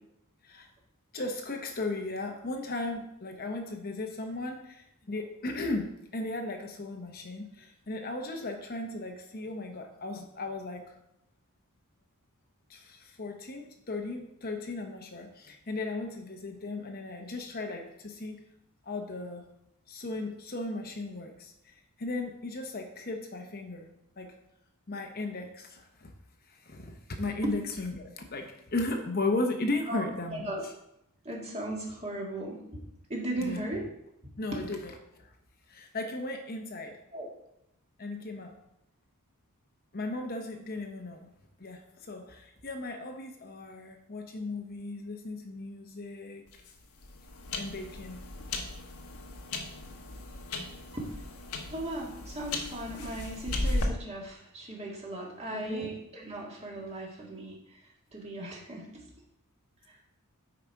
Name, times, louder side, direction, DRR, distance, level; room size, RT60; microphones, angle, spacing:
voice 1, 1.1-11.0 12.7-18.4 18.9-19.4 19.9-23.9 24.2-24.3 24.9-26.1 26.5-30.5 33.4-33.6 34.4-35.3 35.7-37.0 38.0-38.5 39.9-41.3 41.6-46.4 47.6-48.2 55.5-55.9, left 2 dB, 40° left, 4 dB, 0.9 m, -36 dB
voice 2, 29.9-30.6 31.2-32.8 33.1-33.8 34.5-34.6 37.1-37.3 50.9-51.3 51.7-57.8 58.1-59.0 59.9-60.0, right 1 dB, 30° right, -2 dB, 1.8 m, -37 dB
sound 1, 46.5-53.8, left 2 dB, 90° left, 1.2 m, -36 dB
8.9 x 4.9 x 4.7 m, 0.82 s
head